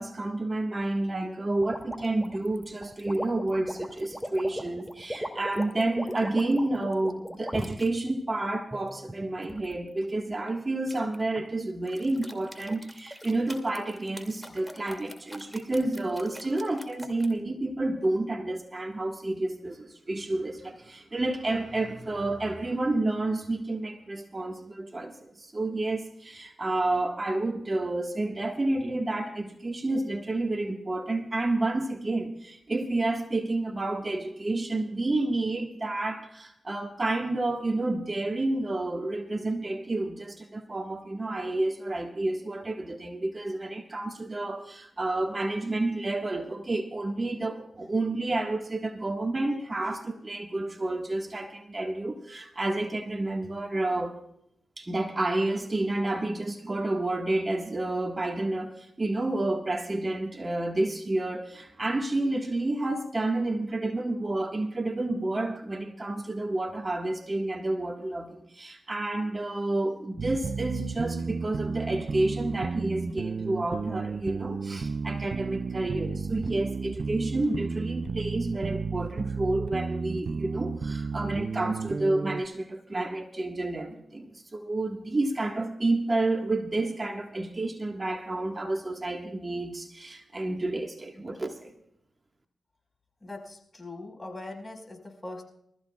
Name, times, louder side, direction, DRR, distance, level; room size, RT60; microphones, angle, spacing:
voice 1, 0.0-54.2 54.8-91.7, right 2 dB, 35° right, 1.6 m, -30 dB
sound 1, 1.6-7.9 8.4-9.7 10.9-11.5 11.9-17.3, equal, 5° left, 2.5 m, -39 dB
sound 2, 70.2-82.4, right 4 dB, 60° right, 0.5 m, -33 dB
voice 2, 93.2-95.4, left 2 dB, 25° left, 4.9 m, -41 dB
25.5 x 14.5 x 2.4 m
cardioid pair, 45°, 0 cm